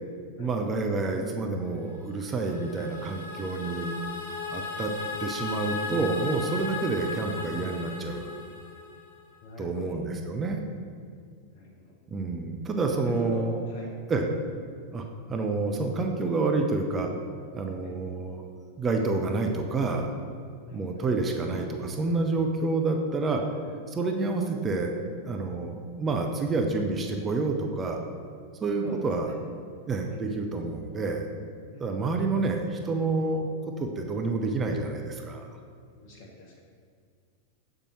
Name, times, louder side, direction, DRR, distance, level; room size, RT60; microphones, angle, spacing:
voice 1, 0.4-3.9 4.5-4.9 5.2-8.4 9.6-10.6 12.1-13.6 14.1-14.3 14.9-17.1 17.5-18.5 18.8-20.1 20.7-23.4 23.9-25.0 25.2-28.0 28.6-29.3 29.9-31.3 31.8-35.4, right 3 dB, 20° right, 3 dB, 0.5 m, -28 dB
sound 1, 2.0-9.1, left 4 dB, 65° left, 1.4 m, -36 dB
voice 2, 9.4-10.0 11.5-11.9 12.9-13.9 17.8-17.9 20.6-20.8 28.8-29.4 30.1-30.2 31.7-32.0 36.0-36.6, left 2 dB, 45° left, -1 dB, 0.7 m, -42 dB
6.6 x 5.5 x 3.1 m, 2.2 s
figure-of-eight pair, 90°, 0 cm